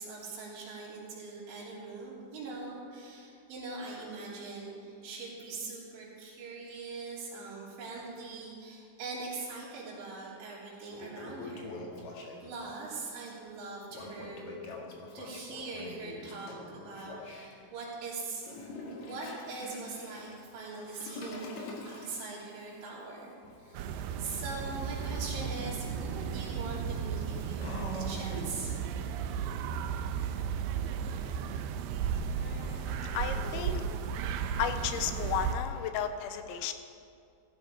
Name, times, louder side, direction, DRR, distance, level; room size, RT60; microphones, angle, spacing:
voice 1, 0.0-11.8 12.4-14.4 15.1-18.5 19.0-23.9 24.2-28.7, right 3 dB, 70° right, -8 dB, 5.5 m, -42 dB
Toilet flush, 10.2-10.3 10.7-12.7 13.9-17.5 18.3-28.7, left 2 dB, 55° left, 2.1 m, -45 dB
sound 1, 23.7-35.6, right 7 dB, 90° right, 2.2 m, -34 dB
voice 2, 32.4-33.8 34.6-36.7, left 9 dB, 85° left, 9 dB, 3.0 m, -34 dB
16.0 x 13.0 x 4.8 m, 2.5 s
omnidirectional pair, 5.4 m